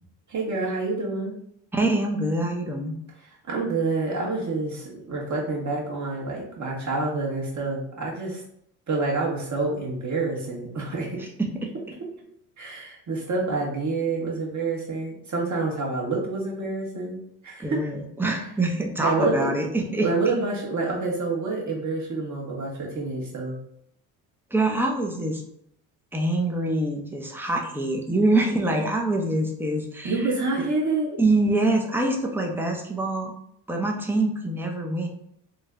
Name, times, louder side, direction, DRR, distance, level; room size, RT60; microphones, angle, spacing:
voice 1, 0.3-1.3 3.5-8.4 8.9-11.3 12.6-17.2 17.4-17.8 19.0-19.5 20.0-23.6 30.0-31.2, right 3 dB, 40° right, -2 dB, 1.4 m, -27 dB
voice 2, 1.7-2.9 11.4-11.5 17.6-20.1 24.5-25.4 26.1-30.2 31.2-33.3 33.7-35.1, right 2 dB, 5° right, 2 dB, 0.7 m, -25 dB
3.2 x 2.1 x 3.6 m, 0.73 s
supercardioid pair, 65°, 46 cm